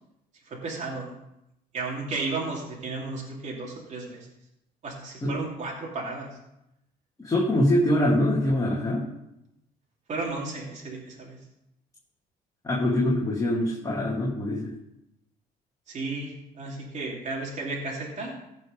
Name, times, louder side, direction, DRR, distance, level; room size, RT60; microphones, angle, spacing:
voice 1, 0.5-1.1 1.7-4.3 4.8-6.4 10.1-11.4 15.9-18.3, right 3 dB, 45° right, -3 dB, 2.8 m, -33 dB
voice 2, 7.2-9.0 12.6-14.7, left 1 dB, 20° left, -5 dB, 2.5 m, -24 dB
15.5 x 5.5 x 5.2 m, 0.85 s
cardioid pair, 110°, 17 cm